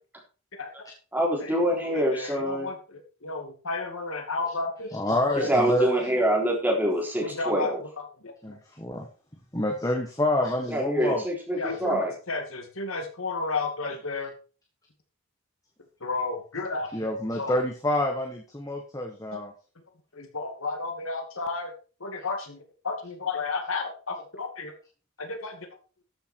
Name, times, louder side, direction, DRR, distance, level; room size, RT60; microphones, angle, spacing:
voice 1, 1.1-2.7 5.5-7.8 10.7-12.1, equal, 10° right, -1 dB, 3.8 m, -25 dB
voice 2, 1.9-2.8 3.2-4.9 7.2-7.7 8.2-8.3 11.6-14.3 16.0-16.9 17.4-17.6 19.3-19.4 20.2-21.7 22.0-22.6 22.8-24.7 25.2-25.6, left 3 dB, 75° left, 5 dB, 2.4 m, -32 dB
voice 3, 4.9-5.9 8.4-9.1 9.5-11.2 11.7-11.8 14.2-14.3 16.9-19.5, left 1 dB, 15° left, 2 dB, 1.4 m, -27 dB
13.5 x 7.0 x 4.6 m, 0.36 s
head